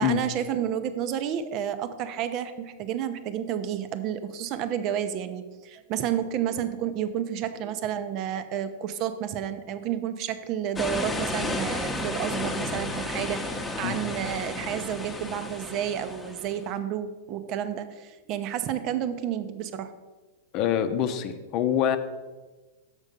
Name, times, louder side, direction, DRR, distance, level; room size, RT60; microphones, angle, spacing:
voice 1, 0.0-19.9, right 9 dB, 45° right, 10 dB, 0.6 m, -30 dB
sound 1, 10.8-16.7, left 2 dB, 10° left, 0.9 m, -32 dB
voice 2, 20.5-22.0, left 9 dB, 45° left, 9 dB, 0.7 m, -25 dB
6.8 x 6.2 x 5.2 m, 1.2 s
hypercardioid pair, 100°, 0 cm